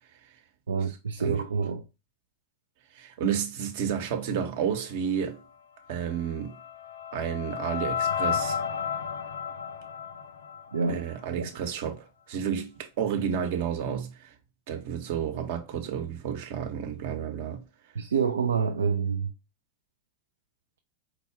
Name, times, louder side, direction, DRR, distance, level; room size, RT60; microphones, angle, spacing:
voice 1, 0.7-1.8 10.7-11.0 11.3-11.5 17.9-19.3, right 5 dB, 70° right, 0.4 m, -27 dB
voice 2, 2.9-5.4 5.9-6.6 7.1-8.6 10.9-14.3 14.7-17.6, right 8 dB, 50° right, 0.9 m, -31 dB
sound 1, 6.2-11.3, left 7 dB, 65° left, 0.4 m, -32 dB
4.7 x 2.2 x 3.3 m
figure-of-eight pair, 90°, 0 cm